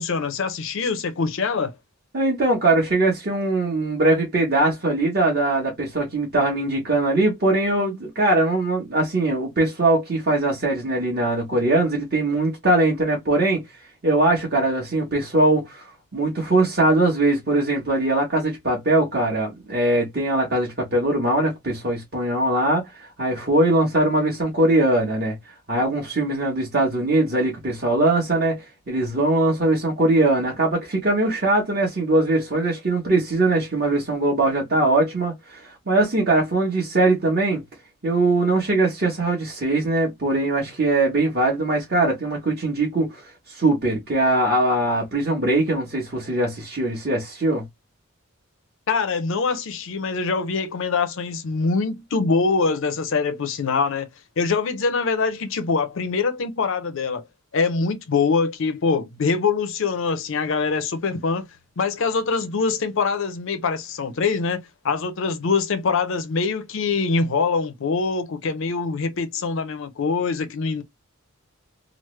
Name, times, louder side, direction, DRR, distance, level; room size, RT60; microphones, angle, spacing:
voice 1, 0.0-1.7 48.9-54.1 54.4-57.2 57.5-61.5 61.8-70.8, left 4 dB, 60° left, 0.5 m, -24 dB
voice 2, 2.1-13.6 14.0-15.9 16.1-25.3 25.7-37.6 38.0-47.6, right 2 dB, 45° right, 1.1 m, -21 dB
3.1 x 2.0 x 3.1 m
head